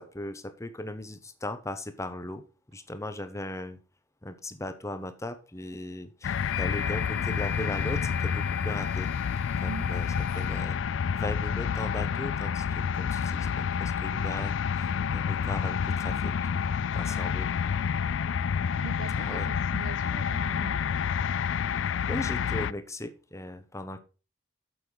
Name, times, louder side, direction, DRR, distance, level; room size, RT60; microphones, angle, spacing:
voice 1, 0.0-2.4 2.7-3.8 4.2-9.1 9.6-10.8 11.1-16.3 16.9-17.5 18.5-18.7 19.2-19.5 22.1-24.0, left 1 dB, 15° left, 1.0 m, -38 dB
sound 1, 6.2-22.7, left 7 dB, 75° left, 0.4 m, -29 dB
sound 2, 6.4-10.7, left 5 dB, 55° left, 0.9 m, -40 dB
voice 2, 18.8-20.8, right 6 dB, 70° right, 0.4 m, -42 dB
8.1 x 6.9 x 5.4 m
head